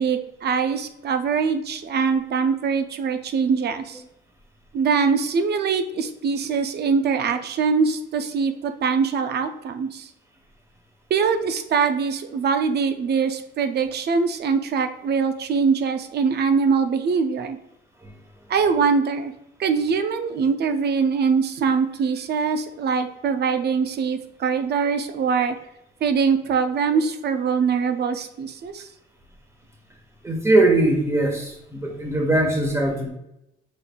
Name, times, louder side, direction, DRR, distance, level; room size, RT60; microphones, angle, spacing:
voice 1, 0.0-4.0 4.7-10.1 11.1-17.6 18.5-19.3 19.6-25.6 26.0-28.9, right 5 dB, 55° right, 9 dB, 0.5 m, -23 dB
voice 2, 30.2-33.1, right 2 dB, 15° right, 2 dB, 1.2 m, -21 dB
5.3 x 3.9 x 2.3 m, 0.85 s
cardioid pair, 90°, 20 cm